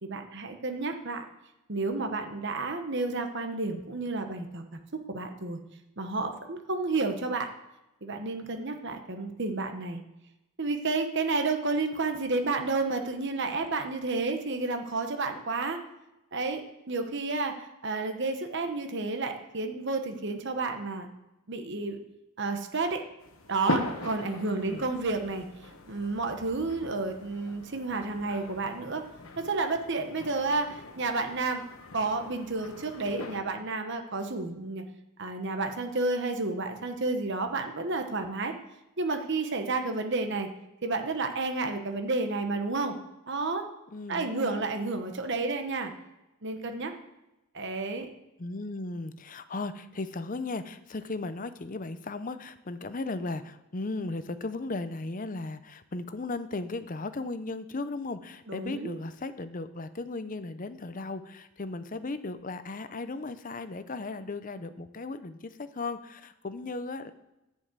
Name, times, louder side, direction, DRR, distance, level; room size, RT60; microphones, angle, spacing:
voice 1, 0.0-1.2 1.7-4.8 5.1-5.6 6.0-7.5 8.0-10.0 10.6-15.8 16.3-21.1 21.5-22.0 22.4-23.0 23.5-29.0 29.4-31.6 31.9-34.9 35.2-38.5 39.0-40.5 40.8-43.0 43.3-43.7 44.1-45.9 46.4-46.9 47.5-48.1 58.5-58.9, right 3 dB, 55° right, 5 dB, 1.1 m, -31 dB
sound 1, 23.2-33.4, left 2 dB, 65° left, 1.3 m, -40 dB
voice 2, 24.3-24.8 43.9-44.7 48.4-67.1, left 3 dB, 35° left, 12 dB, 0.6 m, -36 dB
10.5 x 5.4 x 8.1 m, 0.96 s
head